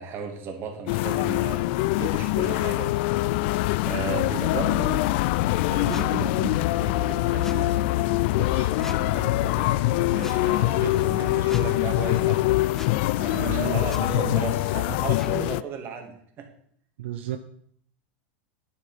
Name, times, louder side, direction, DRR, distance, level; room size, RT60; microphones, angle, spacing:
voice 1, 0.0-2.9 3.8-5.0 5.7-7.8 8.2-12.6 13.1-16.5, right 5 dB, 40° right, 3 dB, 2.8 m, -35 dB
sound 1, 0.9-15.6, left 18 dB, 65° left, 0.4 m, -24 dB
sound 2, 2.0-15.2, left 8 dB, 90° left, 0.8 m, -36 dB
voice 2, 4.1-4.6 13.3-15.0 17.0-17.4, right 12 dB, 85° right, 7 dB, 0.8 m, -35 dB
sound 3, 5.9-6.1 7.4-7.6 8.8-9.0 10.2-10.4 11.5-11.7 12.7-12.9 13.9-14.0 15.2-15.3, left 2 dB, 5° left, 0.7 m, -41 dB
9.8 x 8.2 x 5.9 m, 0.64 s
supercardioid pair, 115°, 6 cm